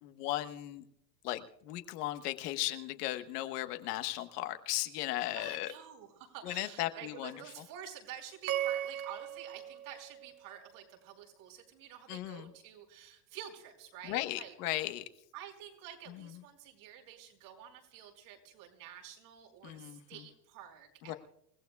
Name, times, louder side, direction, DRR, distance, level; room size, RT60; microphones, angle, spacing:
voice 1, 0.0-0.8 1.2-5.7 6.4-7.3 12.1-12.5 14.1-15.0 19.6-20.0 21.1-21.2, left 15 dB, 65° left, 8 dB, 1.4 m, -36 dB
voice 2, 5.3-14.5 15.3-21.2, right 10 dB, 65° right, 1 dB, 4.9 m, -49 dB
sound 1, 8.5-10.8, right 11 dB, 30° right, 0.6 m, -38 dB
28.0 x 16.0 x 2.4 m, 0.75 s
supercardioid pair, 135°, 50 cm